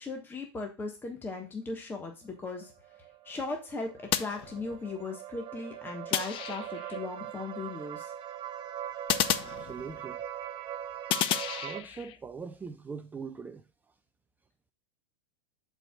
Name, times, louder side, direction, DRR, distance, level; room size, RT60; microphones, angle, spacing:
voice 1, 0.0-2.7 3.2-8.1, left 3 dB, 15° left, 1.3 m, -38 dB
sound 1, 2.5-11.8, right 11 dB, 35° right, 1.0 m, -41 dB
sound 2, 4.1-5.0 6.1-7.0 9.1-10.2 11.1-12.2, left 11 dB, 35° left, 0.7 m, -32 dB
voice 2, 9.4-10.2 11.5-13.6, right 5 dB, 10° right, 0.5 m, -42 dB
11.5 x 4.6 x 2.3 m
hypercardioid pair, 120°, 14 cm